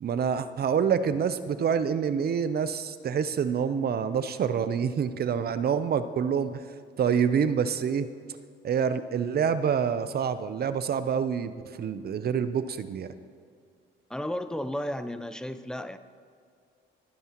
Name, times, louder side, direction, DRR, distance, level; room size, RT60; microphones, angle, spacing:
voice 1, 0.0-6.6 7.0-8.1 8.6-13.1, right 7 dB, 50° right, 12 dB, 0.7 m, -27 dB
voice 2, 14.1-16.0, left 1 dB, 5° left, 11 dB, 0.6 m, -33 dB
23.5 x 9.6 x 3.0 m, 2.3 s
cardioid pair, 90°, 20 cm